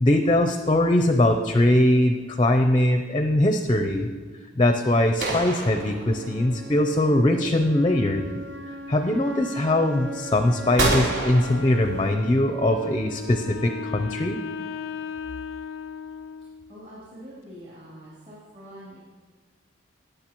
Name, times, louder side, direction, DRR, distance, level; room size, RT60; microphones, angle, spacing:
voice 1, 0.0-4.1 4.6-8.2 8.9-14.4, left 1 dB, 25° left, 6 dB, 0.5 m, -21 dB
sound 1, 5.2-6.6 10.8-12.4, right 2 dB, 80° right, 3.2 m, -28 dB
Wind instrument woodwind instrument, 6.0-14.0, right 1 dB, 65° right, 0.8 m, -40 dB
Wind instrument woodwind instrument 2, 12.6-16.8, left 7 dB, 80° left, 0.3 m, -36 dB
voice 2, 16.7-19.0, equal, 40° right, -8 dB, 2.9 m, -44 dB
18.0 x 6.6 x 3.0 m, 1.5 s
head